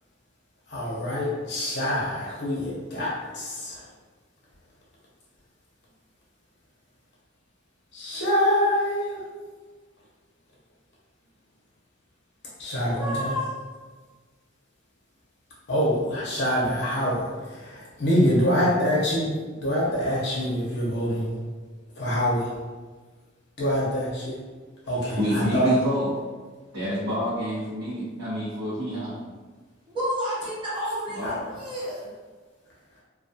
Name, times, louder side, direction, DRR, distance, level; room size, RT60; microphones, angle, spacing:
voice 1, 0.7-3.8 7.9-9.2 12.6-13.3 15.7-21.3 22.0-22.5 23.6-24.3 24.9-25.7 31.2-31.3, equal, 60° left, -6 dB, 0.6 m, -25 dB
voice 2, 13.0-13.5 29.9-32.1, equal, 25° right, -9 dB, 0.7 m, -30 dB
voice 3, 24.8-26.1 26.7-29.2 31.1-31.3, equal, 75° right, -12 dB, 0.9 m, -28 dB
2.3 x 2.3 x 2.6 m, 1.4 s
head